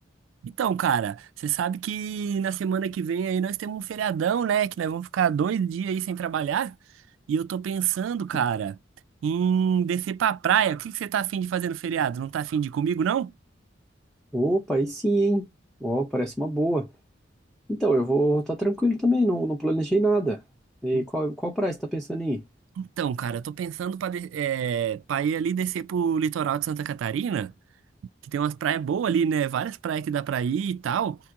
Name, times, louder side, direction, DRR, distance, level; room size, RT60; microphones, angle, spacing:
voice 1, 0.4-6.8 7.3-8.8 9.2-13.3 20.9-21.0 22.8-27.5 28.2-31.2, right 8 dB, 85° right, 0.3 m, -26 dB
voice 2, 14.3-15.5 15.8-16.9 17.7-20.4 20.8-22.4, right 1 dB, ahead, 0.5 m, -24 dB
2.9 x 2.5 x 3.5 m
head